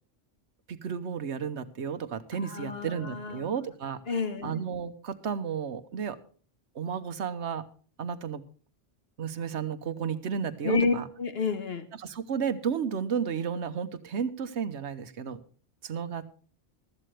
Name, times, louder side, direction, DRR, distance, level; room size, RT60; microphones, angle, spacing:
voice 1, 0.7-4.0 4.4-6.2 6.7-7.7 8.0-8.4 9.2-11.1 11.9-15.4 15.8-16.3, right 7 dB, 70° right, 12 dB, 1.2 m, -33 dB
voice 2, 2.4-3.5 4.1-4.6 10.6-11.9, left 4 dB, 55° left, 8 dB, 1.5 m, -30 dB
15.5 x 13.0 x 3.3 m, 0.42 s
omnidirectional pair, 1.2 m